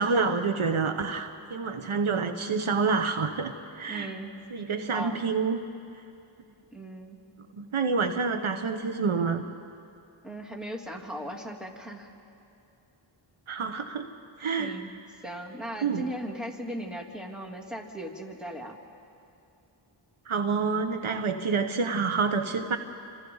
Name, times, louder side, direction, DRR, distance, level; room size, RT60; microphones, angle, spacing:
voice 1, 0.0-4.1 4.5-5.6 7.5-9.4 13.5-14.1 14.4-14.8 15.8-16.0 20.3-22.8, right 4 dB, 75° right, 7 dB, 1.2 m, -28 dB
voice 2, 3.9-4.3 4.9-5.2 6.7-7.2 10.2-12.1 14.6-14.9 15.2-18.8, right 1 dB, ahead, -1 dB, 3.2 m, -37 dB
29.5 x 26.5 x 4.0 m, 2.6 s
cardioid pair, 45°, 50 cm